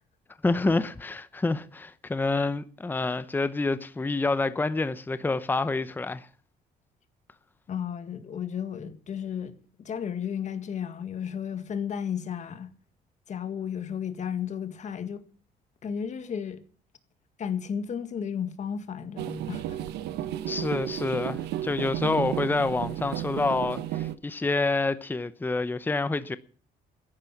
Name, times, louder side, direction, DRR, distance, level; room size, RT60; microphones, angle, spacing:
voice 1, 0.4-6.3 20.5-26.4, left 3 dB, 10° left, 0.8 m, -27 dB
voice 2, 7.7-9.5 9.8-12.7 13.3-15.2 15.8-16.6 17.4-19.8, left 8 dB, 45° left, 1.9 m, -33 dB
sound 1, 19.2-24.2, right 12 dB, 85° right, 1.1 m, -33 dB
14.0 x 10.5 x 7.3 m
cardioid pair, 110°, 17 cm